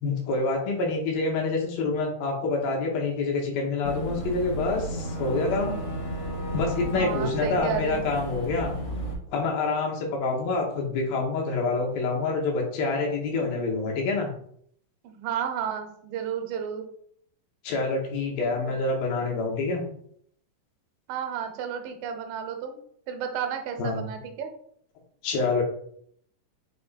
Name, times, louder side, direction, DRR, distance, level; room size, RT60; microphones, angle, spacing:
voice 1, 0.0-5.8 6.5-8.7 9.3-14.3 17.6-19.8 23.8-24.1 25.2-25.6, left 3 dB, 85° left, 0 dB, 3.1 m, -27 dB
Boat Water vehicle / Engine, 3.8-9.1, right 1 dB, 50° left, 1.0 m, -33 dB
voice 2, 6.9-8.1 15.0-16.9 18.7-18.8 21.1-22.8 23.1-24.5, right 8 dB, 85° right, 6 dB, 2.4 m, -32 dB
7.5 x 3.0 x 4.2 m, 0.65 s
omnidirectional pair, 4.0 m